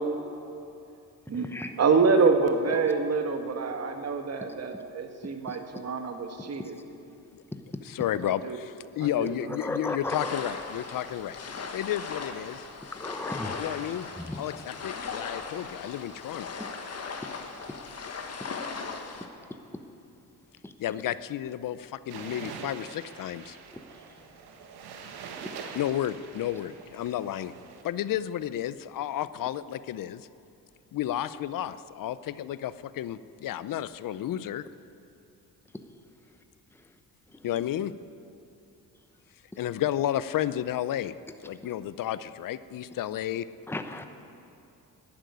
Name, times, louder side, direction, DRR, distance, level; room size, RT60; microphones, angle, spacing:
voice 1, 1.3-6.8 8.2-8.6 9.0-9.5, right 4 dB, 40° right, 6 dB, 1.4 m, -26 dB
voice 2, 7.8-11.4 11.7-12.6 13.6-14.1 14.4-16.5 20.8-23.6 25.7-27.5 27.8-30.3 30.9-34.6 37.4-37.9 39.6-41.1 41.4-43.5, left 11 dB, 60° left, 15 dB, 0.6 m, -32 dB
voice 3, 9.6-10.3 13.0-13.7 14.3-14.4 16.6-16.7 20.6-20.7 43.7-44.0, left 2 dB, 5° left, 6 dB, 0.9 m, -34 dB
sound 1, 10.1-19.3, left 4 dB, 40° left, 1.4 m, -38 dB
sound 2, 22.1-27.8, right 6 dB, 80° right, 1.4 m, -44 dB
11.5 x 8.9 x 9.4 m, 2.7 s
cardioid pair, 85°, 38 cm